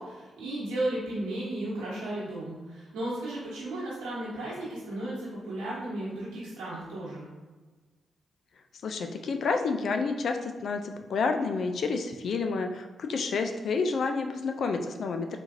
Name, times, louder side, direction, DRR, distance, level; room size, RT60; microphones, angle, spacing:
voice 1, 0.0-7.3, right 1 dB, 85° right, -8 dB, 1.2 m, -34 dB
voice 2, 8.8-15.4, left 4 dB, 70° left, 5 dB, 0.3 m, -29 dB
4.4 x 2.5 x 2.6 m, 1.3 s
supercardioid pair, 45°, 0 cm